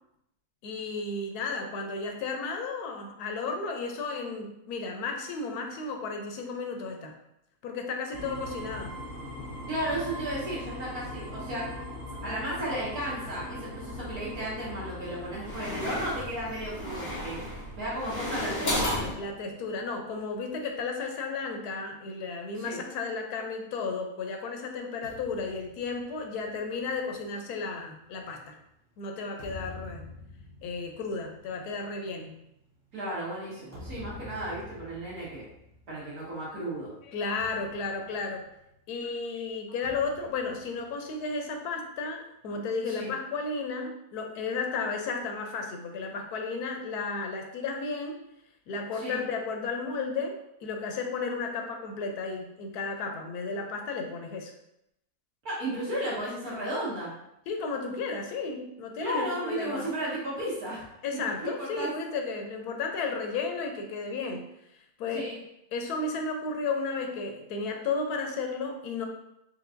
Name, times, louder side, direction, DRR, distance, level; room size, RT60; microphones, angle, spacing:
voice 1, 0.6-7.2 7.6-9.0 19.2-28.6 29.0-30.1 30.6-32.4 37.0-38.4 38.9-48.2 48.7-54.5 57.5-59.9 61.0-64.4 65.0-65.3 65.7-69.1, left 4 dB, 85° left, 3 dB, 1.2 m, -33 dB
sound 1, 8.1-19.9, equal, 55° left, 1.3 m, -41 dB
voice 2, 9.7-11.7 12.2-17.4 17.8-19.1 22.5-22.8 32.9-35.4 35.9-36.9 42.9-43.1 48.9-49.2 55.4-57.1 59.0-60.8 61.1-61.9 65.1-65.4, right 1 dB, 70° right, -7 dB, 2.1 m, -34 dB
sound 2, 13.9-14.5 15.2-19.1, left 1 dB, 35° left, 1.1 m, -33 dB
sound 3, 25.0-28.6 29.1-36.6 36.8-37.0 37.4-39.0 39.8-41.6, left 2 dB, 10° right, 1.1 m, -48 dB
4.6 x 3.3 x 2.5 m, 0.81 s
omnidirectional pair, 1.6 m